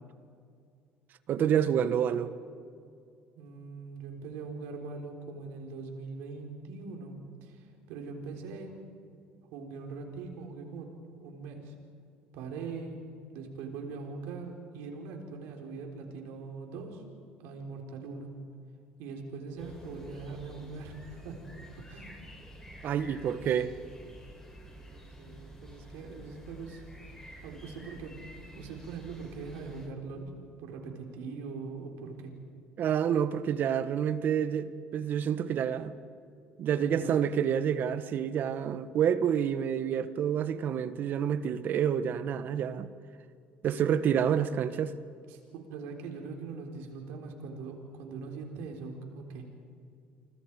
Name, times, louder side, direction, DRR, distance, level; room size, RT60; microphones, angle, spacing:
voice 1, 1.3-2.3 22.8-23.7 32.8-35.9 36.6-42.9 43.6-44.9, right 8 dB, 55° right, 1.2 m, -28 dB
voice 2, 3.3-8.8 9.5-10.9 11.2-11.7 12.3-13.0 13.3-17.0 17.4-18.4 19.0-21.4 21.9-22.1 24.7-26.8 27.4-28.2 28.5-30.3 30.6-32.3 36.7-37.2 45.3-49.5, right 4 dB, 80° right, 4.1 m, -42 dB
sound 1, 19.6-29.9, equal, 15° left, 7.0 m, -49 dB
30.0 x 25.0 x 4.8 m
supercardioid pair, 90°, 4 cm